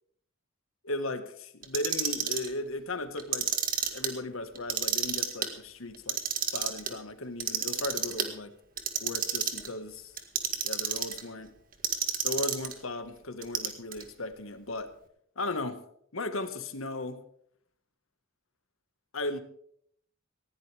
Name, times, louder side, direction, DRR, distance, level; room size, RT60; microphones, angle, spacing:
voice 1, 0.8-3.5 3.9-6.2 6.5-8.5 9.0-10.1 10.6-11.5 12.2-14.9 15.4-15.8 16.1-17.2 19.1-19.4, left 2 dB, 85° left, 9 dB, 1.7 m, -36 dB
Clock, 1.6-2.5 3.2-4.1 4.6-5.5 5.9-6.9 7.4-8.3 8.8-9.7 10.2-11.2 11.8-12.7 13.4-14.0, right 8 dB, 45° right, 1.9 m, -30 dB
19.5 x 16.0 x 3.5 m, 0.65 s
head